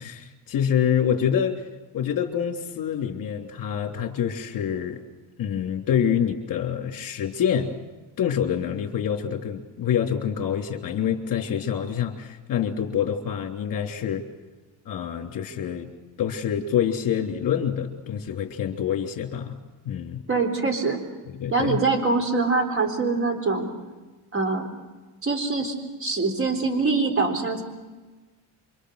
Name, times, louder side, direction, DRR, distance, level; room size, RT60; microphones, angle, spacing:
voice 1, 0.0-1.6 1.9-5.0 5.4-7.7 8.2-14.2 14.8-15.9 16.2-19.6 19.8-20.2 21.4-21.8, left 8 dB, 50° left, 3 dB, 3.2 m, -26 dB
voice 2, 20.3-21.0 21.5-23.7 24.3-24.7 25.2-25.7 26.0-27.6, right 3 dB, 30° right, 5 dB, 3.9 m, -24 dB
27.5 x 24.5 x 6.5 m, 1.3 s
cardioid pair, 140°, 44 cm